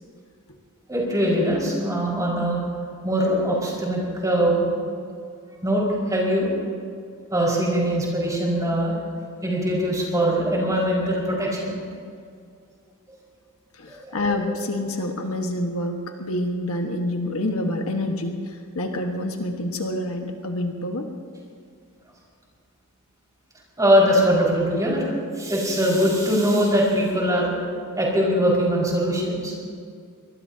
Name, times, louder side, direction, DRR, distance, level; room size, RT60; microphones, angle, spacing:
voice 1, 0.9-2.6 3.0-4.7 5.6-6.5 7.3-9.0 9.4-11.7 13.9-14.5 23.8-25.0 25.4-27.6 28.0-29.5, equal, 15° right, -4 dB, 5.2 m, -22 dB
voice 2, 13.7-21.1, left 1 dB, 80° left, 3 dB, 1.5 m, -27 dB
24.5 x 20.5 x 2.8 m, 2.3 s
head